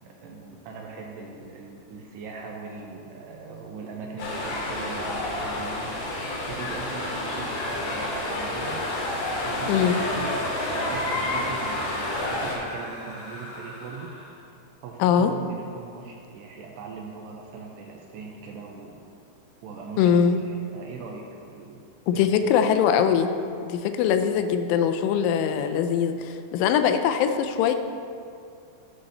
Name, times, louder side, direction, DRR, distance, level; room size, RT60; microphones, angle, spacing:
voice 1, 0.0-6.0 6.5-8.8 9.4-14.1 14.8-19.0 19.6-21.8 22.1-22.3, right 4 dB, 80° right, 0 dB, 2.5 m, -40 dB
sound 1, 4.2-12.5, left 1 dB, 70° left, 4.2 m, -29 dB
sound 2, 6.8-14.4, left 1 dB, 45° left, 2.6 m, -41 dB
voice 2, 9.7-10.0 15.0-15.3 20.0-20.4 22.1-23.3 23.6-27.8, left 8 dB, 85° left, 8 dB, 3.0 m, -22 dB
11.5 x 4.1 x 6.5 m, 2.4 s
omnidirectional pair, 5.4 m